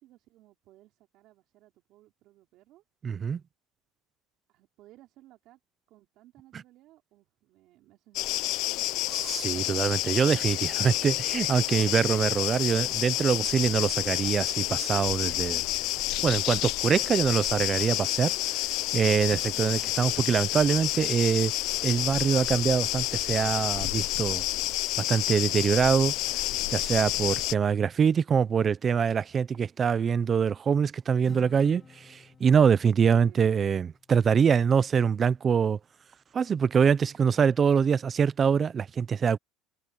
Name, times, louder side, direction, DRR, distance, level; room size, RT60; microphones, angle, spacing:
voice 1, 0.0-2.8 4.5-5.6 5.9-9.3 19.5-19.9 33.0-33.6, right 16 dB, 55° right, 4.8 m, -58 dB
voice 2, 3.0-3.4 9.1-15.6 16.2-18.6 18.9-21.5 21.8-24.4 25.1-26.1 26.7-35.8 36.3-39.4, right 7 dB, 25° right, 0.8 m, -24 dB
sound 1, 8.2-27.5, left 18 dB, 60° left, 1.0 m, -29 dB
Acoustic guitar, 31.2-34.9, left 5 dB, 20° left, 2.4 m, -54 dB
supercardioid pair, 135°, 0 cm